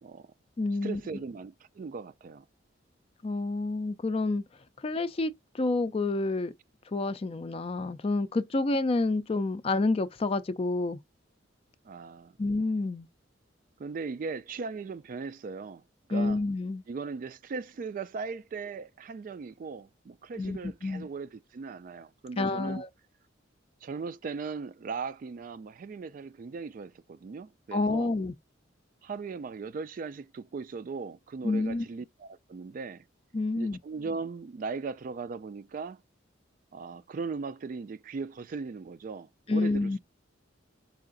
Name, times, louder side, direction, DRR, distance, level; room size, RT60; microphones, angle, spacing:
voice 1, 0.0-0.3 0.8-2.5 11.8-12.4 13.8-15.8 16.1-16.4 16.9-22.8 23.8-28.1 29.0-33.0 33.6-36.0 36.7-40.0, right 4 dB, 45° right, 0.3 m, -38 dB
voice 2, 0.6-1.0 3.2-4.4 4.8-6.5 6.9-11.0 12.4-13.1 16.1-16.8 20.4-21.1 22.4-22.9 27.7-28.3 31.4-31.9 33.3-33.8 39.5-40.0, left 2 dB, 30° left, 0.4 m, -29 dB
4.7 x 2.5 x 3.8 m
head